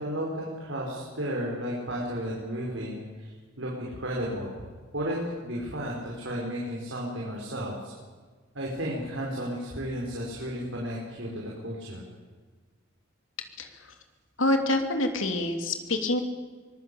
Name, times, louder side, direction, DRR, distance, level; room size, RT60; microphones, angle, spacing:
voice 1, 0.0-4.6 4.9-7.9 8.6-12.0, equal, 70° right, -3 dB, 5.1 m, -33 dB
voice 2, 14.4-16.2, left 2 dB, 75° left, 5 dB, 2.9 m, -26 dB
24.0 x 20.0 x 8.6 m, 1.4 s
head